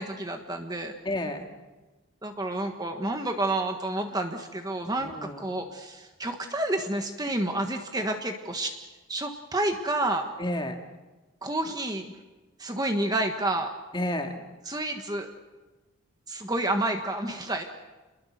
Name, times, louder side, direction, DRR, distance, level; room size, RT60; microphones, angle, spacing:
voice 1, 0.0-1.0 2.2-8.7 9.1-10.2 11.4-12.0 12.6-13.7 14.6-15.3 16.3-17.6, right 1 dB, 15° right, 5 dB, 1.4 m, -29 dB
voice 2, 1.0-1.5 5.0-5.5 10.4-10.8 13.9-14.3, left 1 dB, 20° left, 4 dB, 2.1 m, -31 dB
29.0 x 21.5 x 6.6 m, 1.2 s
head